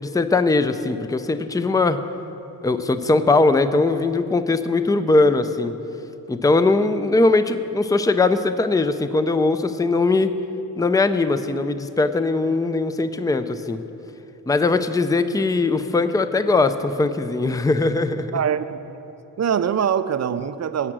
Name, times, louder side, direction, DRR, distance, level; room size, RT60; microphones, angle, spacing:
voice 1, 0.0-2.0 2.6-5.7 6.3-10.3 10.8-13.8 14.5-18.4, left 3 dB, 10° left, 0.5 m, -20 dB
voice 2, 18.3-18.8 19.4-20.9, right 8 dB, 45° right, 0.5 m, -23 dB
12.5 x 7.8 x 6.1 m
supercardioid pair, 60°, 40 cm